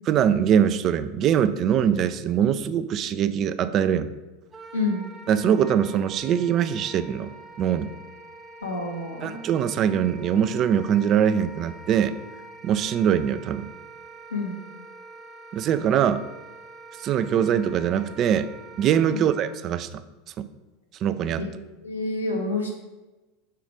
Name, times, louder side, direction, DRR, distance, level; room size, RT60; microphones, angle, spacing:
voice 1, 0.1-4.1 5.3-7.9 9.2-12.1 12.6-13.7 15.5-16.2 17.0-18.5 18.8-19.9 20.4-20.5 21.0-21.4, right 9 dB, 35° right, 12 dB, 0.3 m, -22 dB
Wind instrument woodwind instrument, 4.5-19.6, right 2 dB, 15° right, 0.8 m, -45 dB
voice 2, 4.7-5.0 8.6-9.4 14.3-14.6 19.1-19.3 21.4-21.5 21.8-22.7, left 3 dB, 80° left, -1 dB, 1.2 m, -28 dB
5.6 x 3.9 x 4.8 m, 1.1 s
figure-of-eight pair, 80°, 0 cm